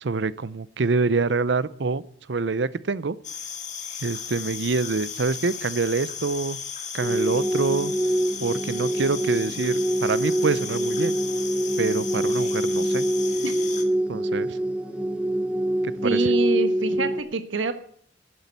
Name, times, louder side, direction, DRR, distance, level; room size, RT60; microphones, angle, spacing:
voice 1, 0.0-2.0 2.3-3.2 4.0-6.6 6.9-7.9 8.4-11.2 11.8-13.1 14.1-14.6 15.8-16.3, right 4 dB, 65° right, 18 dB, 0.6 m, -26 dB
sound 1, 3.2-13.8, left 7 dB, 40° left, 2.0 m, -36 dB
sound 2, 7.0-17.2, right 1 dB, 5° right, 1.0 m, -25 dB
voice 2, 16.0-17.7, right 3 dB, 90° right, 9 dB, 1.3 m, -26 dB
11.5 x 9.5 x 8.2 m, 0.62 s
head